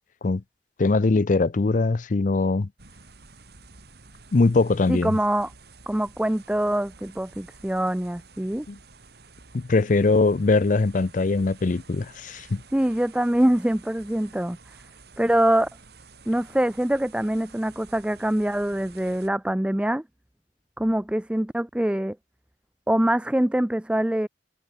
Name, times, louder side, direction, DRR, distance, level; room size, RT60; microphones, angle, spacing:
voice 1, 0.8-2.7 4.3-5.1 8.7-8.8 9.5-12.6, left 3 dB, 45° left, 0.5 m, -21 dB
sound 1, 2.8-19.3, right 4 dB, 60° right, 2.6 m, -50 dB
voice 2, 4.9-5.5 5.9-8.7 12.7-14.8 15.2-15.7 16.3-20.0 20.8-22.2 22.9-24.3, right 1 dB, 5° right, 0.4 m, -24 dB
head